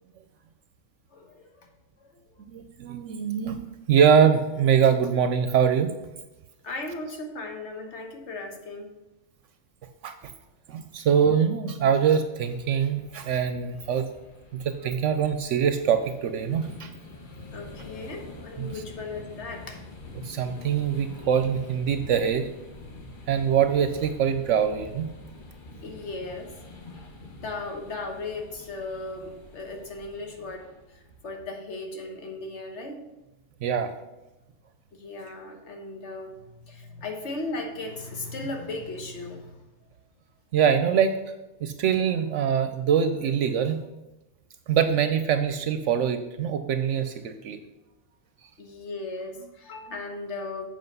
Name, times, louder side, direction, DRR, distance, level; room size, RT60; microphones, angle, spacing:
voice 1, 1.1-1.7 6.6-8.9 17.5-19.8 25.8-26.5 27.3-30.7 30.9-33.0 34.9-39.6 48.6-50.7, left 2 dB, 60° left, 3 dB, 1.5 m, -37 dB
voice 2, 2.5-5.9 10.0-10.1 10.7-14.1 14.5-16.9 18.6-18.7 20.2-22.5 23.3-25.1 33.6-33.9 40.5-41.2 41.6-43.8 44.7-47.6, right 7 dB, 70° right, 9 dB, 0.9 m, -23 dB
sound 1, 12.3-31.3, left 2 dB, 40° left, 1.1 m, -46 dB
7.8 x 5.2 x 5.4 m, 1.0 s
omnidirectional pair, 1.4 m